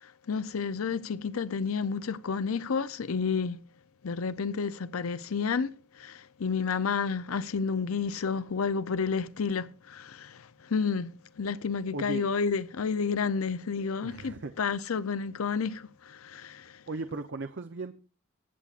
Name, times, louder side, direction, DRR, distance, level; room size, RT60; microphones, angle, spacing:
voice 1, 0.0-3.6 4.0-16.8, left 5 dB, 85° left, 0.6 m, -31 dB
voice 2, 11.9-12.3 14.0-14.5 16.9-17.9, right 3 dB, 55° right, 0.7 m, -36 dB
22.5 x 8.3 x 2.5 m
head